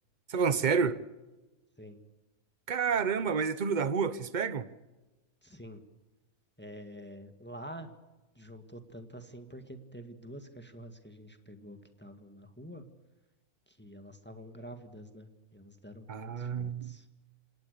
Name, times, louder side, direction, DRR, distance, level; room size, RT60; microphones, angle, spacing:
voice 1, 0.3-1.0 2.7-4.7 16.1-17.0, right 6 dB, 35° right, 0.9 m, -29 dB
voice 2, 5.4-5.8 6.6-8.0 8.3-12.9 13.7-17.1, equal, 5° left, 1.7 m, -47 dB
26.5 x 18.5 x 6.7 m
omnidirectional pair, 1.6 m